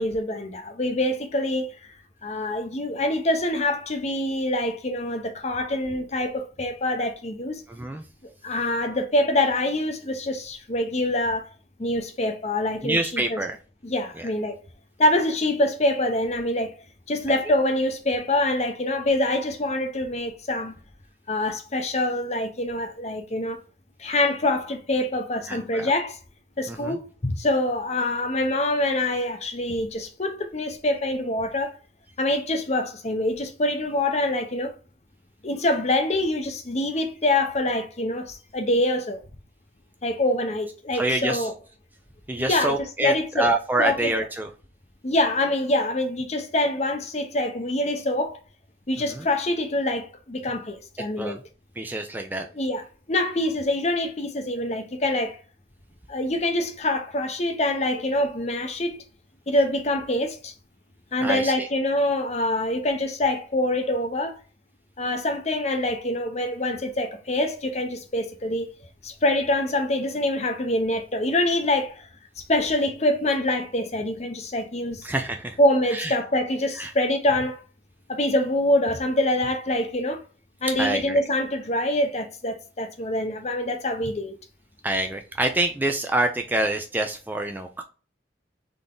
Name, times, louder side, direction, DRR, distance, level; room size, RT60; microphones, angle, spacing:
voice 1, 0.0-1.9 2.2-7.6 8.4-11.5 11.8-13.4 13.8-14.6 15.0-16.7 17.1-20.8 21.3-23.6 24.0-26.2 26.6-31.8 32.2-34.7 35.4-39.2 40.0-41.5 42.5-42.8 43.0-43.5 43.8-44.1 45.0-48.4 48.9-51.4 52.5-55.4 56.1-59.0 59.5-60.5 61.1-64.4 65.0-68.7 69.0-72.1 72.4-75.1 75.6-77.6 78.1-80.2 80.6-84.4, left 1 dB, 35° left, 0.7 m, -25 dB
voice 2, 7.7-8.0 12.8-13.6 14.2-14.3 25.5-25.9 26.7-27.0 40.9-41.5 42.3-44.5 49.1-49.2 51.2-51.4 51.8-52.5 61.2-61.7 75.0-75.6 75.9-76.1 76.8-76.9 80.8-81.2 84.8-87.8, right 2 dB, 10° right, 0.4 m, -26 dB
3.8 x 3.5 x 3.7 m
head